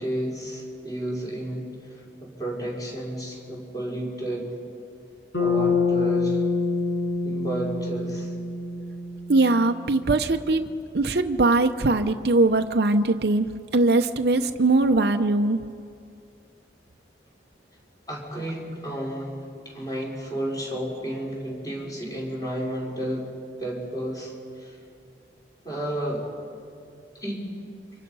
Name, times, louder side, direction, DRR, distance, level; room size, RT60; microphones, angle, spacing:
voice 1, 0.0-4.5 5.4-6.4 7.2-8.3 18.1-19.4 19.6-23.3 23.6-24.8 25.6-26.3 27.2-27.5, right 1 dB, 20° left, -3 dB, 4.9 m, -32 dB
Bass guitar, 5.3-9.7, left 4 dB, 90° left, 6.1 m, -26 dB
voice 2, 9.3-10.7 10.9-13.5 13.7-15.6, right 2 dB, 60° right, 6 dB, 0.8 m, -21 dB
29.5 x 26.0 x 5.5 m, 2.4 s
head